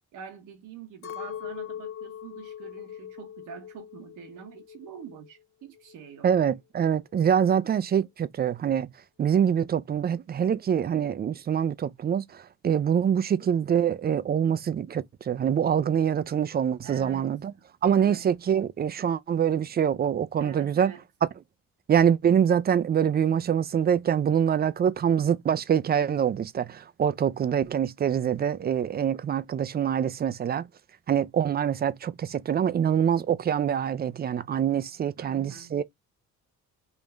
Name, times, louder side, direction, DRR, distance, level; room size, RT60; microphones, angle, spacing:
voice 1, 0.1-6.3 16.8-17.3 17.9-18.2 20.4-21.0 35.2-35.8, right 7 dB, 85° right, 1.1 m, -45 dB
Chink clink, 1.0-5.4 5.6-6.5, left 9 dB, 45° left, 0.6 m, -41 dB
voice 2, 6.2-8.9 9.2-17.5 17.8-20.9 21.9-30.7 31.1-35.8, right 8 dB, 35° right, 0.4 m, -25 dB
3.5 x 2.6 x 3.3 m
cardioid pair, 90°, 30 cm